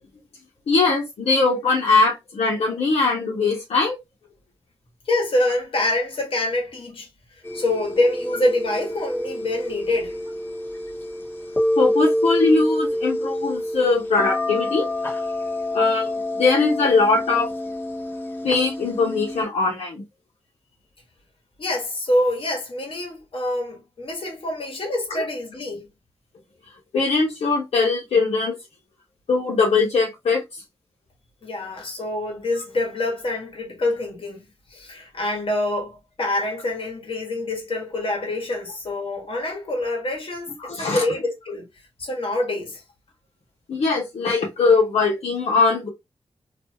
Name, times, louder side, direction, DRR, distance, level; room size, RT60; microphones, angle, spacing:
voice 1, 0.7-4.0 11.8-14.9 15.7-16.1 16.4-17.5 18.4-20.0 26.9-28.5 29.3-30.4 40.6-41.0 43.7-45.9, left 4 dB, 85° left, 1.1 m, -21 dB
voice 2, 5.1-7.1 7.3-10.2 21.6-25.9 31.4-41.7 42.0-42.8, left 1 dB, 60° left, 1.3 m, -26 dB
sound 1, 7.4-19.4, left 1 dB, 20° left, 1.0 m, -27 dB
2.6 x 2.3 x 2.7 m
cardioid pair, 55°, 10 cm